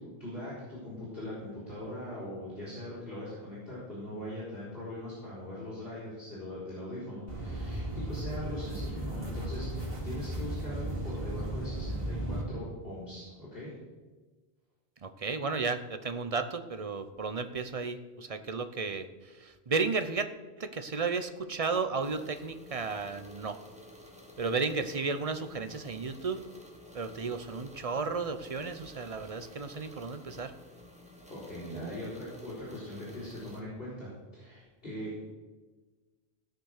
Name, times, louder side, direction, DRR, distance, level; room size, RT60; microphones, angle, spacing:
voice 1, 0.0-13.7 31.3-35.1, left 1 dB, 65° left, -9 dB, 4.9 m, -41 dB
sound 1, 7.3-12.4, right 1 dB, 65° right, 2.5 m, -35 dB
voice 2, 15.0-20.3 20.6-23.6 24.4-26.4 26.9-30.5, right 4 dB, 40° right, 10 dB, 0.8 m, -33 dB
sound 2, 22.0-33.6, left 1 dB, 5° right, 1.7 m, -52 dB
16.5 x 6.5 x 6.6 m, 1.3 s
omnidirectional pair, 1.0 m